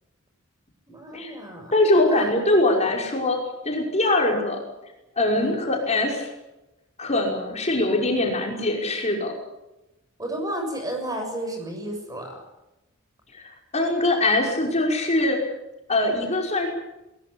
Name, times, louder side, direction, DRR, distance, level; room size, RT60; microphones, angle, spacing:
voice 1, 0.9-1.7 2.1-2.3 5.3-5.6 10.2-12.4, right 1 dB, 15° right, 3 dB, 7.0 m, -32 dB
voice 2, 1.7-3.4 3.6-4.6 5.2-6.3 7.0-9.3 13.3-15.4 15.9-16.7, left 2 dB, 30° left, 1 dB, 5.5 m, -22 dB
21.5 x 21.0 x 8.6 m, 0.96 s
head